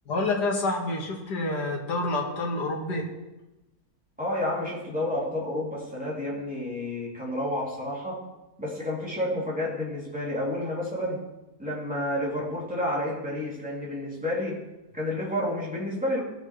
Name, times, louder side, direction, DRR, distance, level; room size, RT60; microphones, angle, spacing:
voice 1, 0.1-3.1, left 2 dB, 85° left, 0 dB, 2.3 m, -28 dB
voice 2, 4.2-8.2 8.6-11.2 11.6-14.6 14.9-16.2, left 1 dB, 5° right, -6 dB, 2.8 m, -30 dB
17.5 x 6.5 x 3.2 m, 1.0 s
omnidirectional pair, 1.7 m